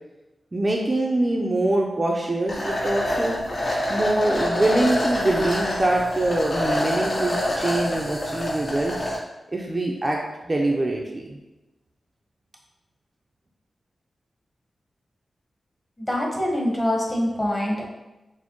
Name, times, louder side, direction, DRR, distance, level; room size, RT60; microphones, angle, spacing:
voice 1, 0.5-3.4 3.9-9.0 9.5-11.4, right 1 dB, 30° right, -1 dB, 0.5 m, -24 dB
sound 1, 2.5-9.2, left 1 dB, 60° left, 1.4 m, -26 dB
voice 2, 16.0-17.9, left 1 dB, 20° left, -1 dB, 1.1 m, -24 dB
6.3 x 2.1 x 3.0 m, 1.0 s
wide cardioid pair, 80°, 0 cm